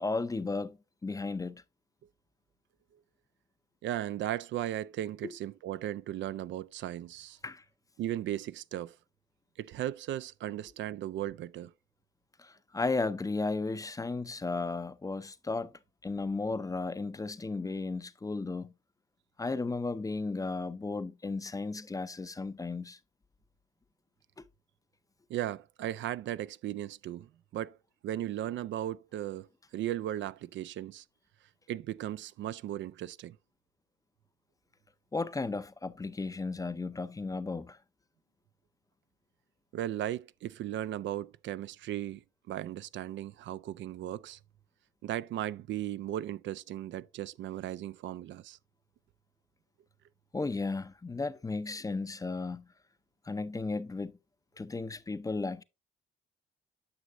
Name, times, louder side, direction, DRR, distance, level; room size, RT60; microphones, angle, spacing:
voice 1, 0.0-1.6 5.2-5.3 7.4-7.6 12.4-15.7 16.0-18.7 19.4-23.0 24.4-24.5 35.1-37.8 50.3-52.6 53.3-54.1 54.6-55.6, left 3 dB, 15° left, 0.5 m, -34 dB
voice 2, 3.8-7.4 8.0-8.9 9.6-11.7 25.3-27.8 28.0-29.5 29.7-31.0 31.7-33.4 39.7-44.4 45.0-48.6, right 12 dB, 70° right, 0.4 m, -36 dB
9.6 x 6.2 x 2.5 m
cardioid pair, 90°, 20 cm